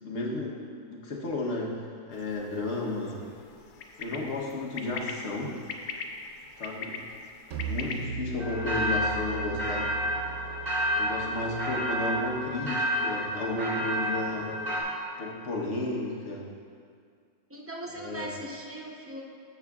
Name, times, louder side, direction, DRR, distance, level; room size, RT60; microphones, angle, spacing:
voice 1, 0.0-1.8 2.1-3.2 4.0-5.6 6.6-7.0 7.6-9.9 11.0-14.5 15.2-16.5 17.9-18.3, left 2 dB, 55° left, -2 dB, 1.4 m, -33 dB
sound 1, 2.1-8.0, left 5 dB, 80° left, 1.1 m, -41 dB
sound 2, 7.5-12.9, right 3 dB, 60° right, 1.0 m, -39 dB
sound 3, 8.4-14.8, equal, 40° right, 1.8 m, -30 dB
voice 2, 17.5-19.2, right 1 dB, 20° right, -2 dB, 0.3 m, -39 dB
13.0 x 7.0 x 2.4 m, 2.2 s
omnidirectional pair, 1.5 m